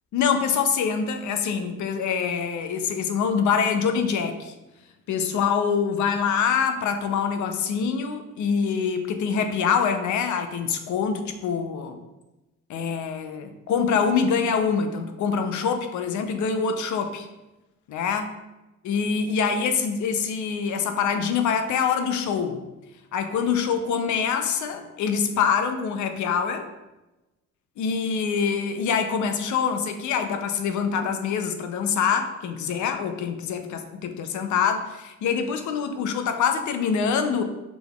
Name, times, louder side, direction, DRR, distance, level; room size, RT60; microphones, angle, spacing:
voice 1, 0.1-4.5 5.1-12.0 12.7-17.3 17.9-18.3 18.8-22.6 23.1-26.7 27.8-37.4, left 6 dB, 75° left, 7 dB, 0.6 m, -25 dB
6.0 x 3.4 x 2.4 m, 1.0 s
cardioid pair, 90°, 30 cm